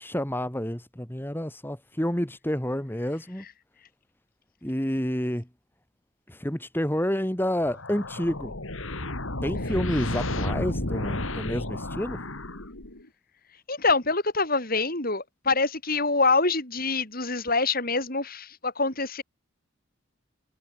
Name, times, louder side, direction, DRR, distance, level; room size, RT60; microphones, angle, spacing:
voice 1, 0.0-3.4 4.6-5.5 6.3-8.5 9.4-12.2, equal, 10° left, 1.9 m, -29 dB
sound 1, 7.6-13.1, left 1 dB, 70° left, 3.6 m, -32 dB
voice 2, 13.7-19.2, left 3 dB, 45° left, 5.8 m, -25 dB
head